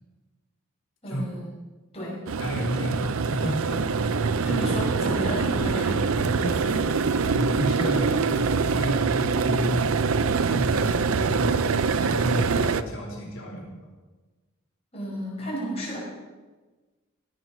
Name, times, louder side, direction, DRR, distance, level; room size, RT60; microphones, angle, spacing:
voice 1, 1.0-1.5 1.9-2.2 4.4-6.1 14.9-16.0, equal, 30° left, -6 dB, 5.7 m, -32 dB
sound 1, 2.3-12.8, right 5 dB, 85° right, 0.6 m, -24 dB
voice 2, 2.4-4.6 6.4-6.8 7.1-10.0 10.5-11.7 12.0-13.8, equal, 65° left, -3 dB, 4.5 m, -31 dB
17.0 x 7.7 x 6.1 m, 1.3 s
head